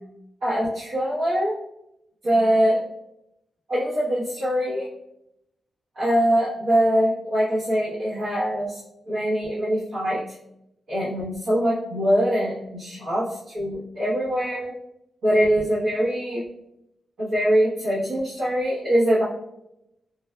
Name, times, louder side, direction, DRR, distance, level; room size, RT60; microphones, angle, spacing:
voice 1, 0.4-1.5 2.2-2.8 3.7-4.9 6.0-8.8 9.1-10.3 10.9-14.7 15.2-16.4 17.2-19.2, equal, 85° right, -11 dB, 1.0 m, -23 dB
5.0 x 2.2 x 2.3 m, 0.83 s
wide cardioid pair, 175°, 0 cm